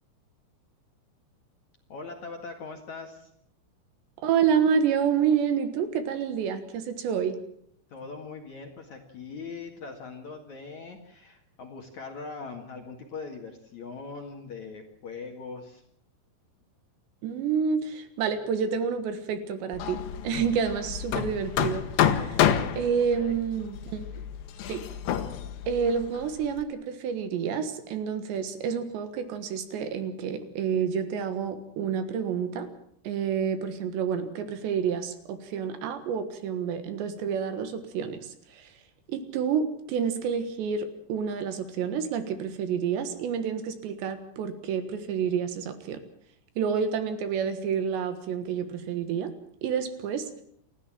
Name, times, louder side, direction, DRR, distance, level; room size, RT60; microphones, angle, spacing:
voice 1, 1.9-3.3 7.9-15.8 18.3-18.4 20.8-20.9 22.3-23.4, left 4 dB, 50° left, 2 dB, 2.4 m, -41 dB
voice 2, 4.2-7.4 17.2-22.4 22.8-24.2 24.7-24.8 25.7-32.7 33.1-38.7 39.1-46.0 46.6-49.3 49.6-50.3, right 7 dB, 70° right, 9 dB, 3.5 m, -29 dB
Hammer, 19.7-26.6, left 10 dB, 70° left, 3.3 m, -29 dB
29.0 x 13.5 x 7.6 m, 0.69 s
omnidirectional pair, 5.6 m